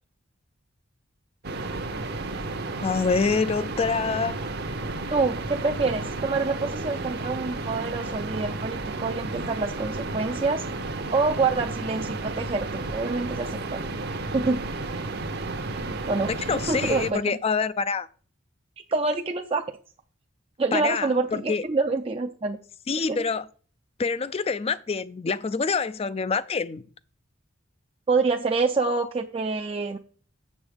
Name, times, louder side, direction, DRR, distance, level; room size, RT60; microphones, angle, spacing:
sound 1, 1.4-17.1, right 2 dB, 55° right, 0.9 m, -32 dB
voice 1, 2.8-4.4 16.5-18.1 20.7-21.6 22.9-23.4 24.0-26.8, left 5 dB, 30° left, 0.4 m, -26 dB
voice 2, 5.1-10.7 11.1-13.8 14.3-14.6 16.1-17.4 18.9-19.7 20.6-22.6 23.1-23.2 28.1-30.0, right 3 dB, 30° right, 0.5 m, -26 dB
7.3 x 7.1 x 5.0 m
head